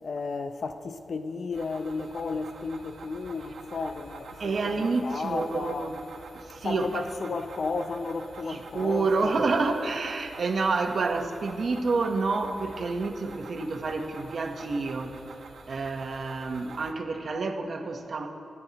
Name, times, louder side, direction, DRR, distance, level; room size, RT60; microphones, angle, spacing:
voice 1, 0.0-6.0 6.6-9.3, left 4 dB, 55° left, 0.6 m, -33 dB
sound 1, 1.5-16.9, right 4 dB, 85° right, 0.9 m, -47 dB
voice 2, 4.4-6.0 6.3-7.3 8.5-15.1 15.7-18.3, right 3 dB, 55° right, 1.0 m, -29 dB
22.5 x 9.6 x 2.9 m
wide cardioid pair, 135°, 0 cm